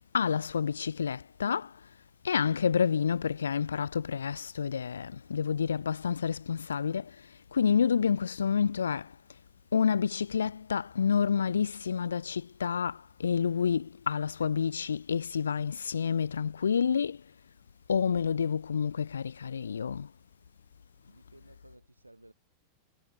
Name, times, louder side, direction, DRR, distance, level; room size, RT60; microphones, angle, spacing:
voice 1, 0.0-1.8 2.2-9.1 9.7-17.2 17.9-20.1, left 7 dB, 70° left, 0.4 m, -29 dB
voice 2, 21.0-22.3, right 1 dB, 85° right, 7.4 m, -56 dB
figure-of-eight pair, 90°, 0 cm